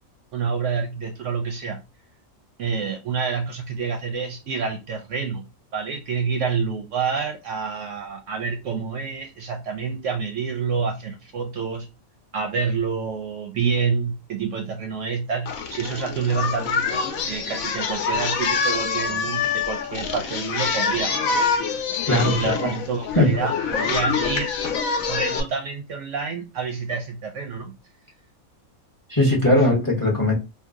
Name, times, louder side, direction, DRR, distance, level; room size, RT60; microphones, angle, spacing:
voice 1, 0.3-1.8 2.6-5.5 5.7-11.9 12.3-21.1 22.1-24.5 25.1-27.8 29.5-29.7, right 5 dB, 65° right, 0.8 m, -28 dB
Singing, 15.5-25.4, left 5 dB, 75° left, 1.0 m, -25 dB
voice 2, 22.1-22.7 23.2-23.3 29.1-30.3, left 1 dB, 20° left, 0.7 m, -19 dB
2.8 x 2.3 x 3.5 m
omnidirectional pair, 1.5 m